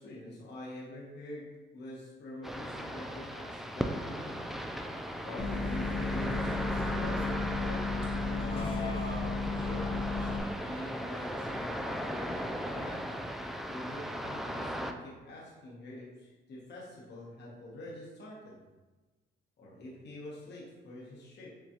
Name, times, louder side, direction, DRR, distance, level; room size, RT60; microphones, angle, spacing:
voice 1, 0.0-4.4 5.2-9.0 10.1-13.2 13.7-18.6 19.6-21.6, left 1 dB, 60° left, -5 dB, 1.1 m, -45 dB
sound 1, 2.4-14.9, equal, ahead, 0.3 m, -37 dB
Bus, 5.4-10.4, left 3 dB, 30° left, 0.8 m, -33 dB
6.8 x 2.3 x 2.9 m, 1.2 s
cardioid pair, 90°, 20 cm